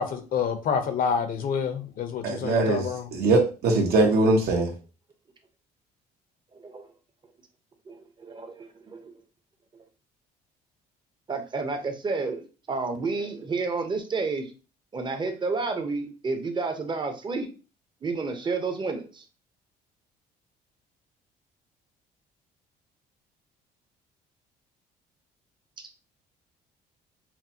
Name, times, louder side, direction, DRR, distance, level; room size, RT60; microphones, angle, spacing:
voice 1, 0.0-3.1, left 6 dB, 55° left, 0.8 m, -28 dB
voice 2, 2.2-4.7, right 2 dB, 70° right, 1.3 m, -22 dB
voice 3, 6.5-6.8 7.9-9.1 11.3-14.5 14.9-17.5 18.0-19.2, right 4 dB, 25° right, 0.8 m, -30 dB
5.9 x 2.3 x 2.8 m
cardioid pair, 110°, 17 cm